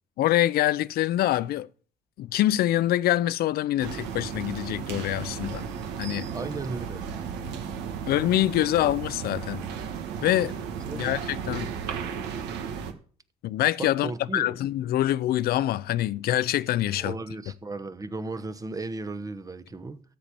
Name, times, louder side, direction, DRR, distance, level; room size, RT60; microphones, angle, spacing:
voice 1, 0.2-1.7 2.2-5.6 6.0-6.3 8.1-9.7 10.2-10.5 10.9-11.7 13.4-17.2, left 14 dB, 65° left, 0.6 m, -25 dB
sound 1, 3.8-12.9, right 7 dB, 90° right, 1.4 m, -34 dB
voice 2, 6.3-7.0 8.6-8.7 10.9-11.2 11.5-11.6 13.8-14.6 17.0-20.0, right 3 dB, 20° right, 1.0 m, -35 dB
13.0 x 4.4 x 8.6 m
cardioid pair, 110°, 17 cm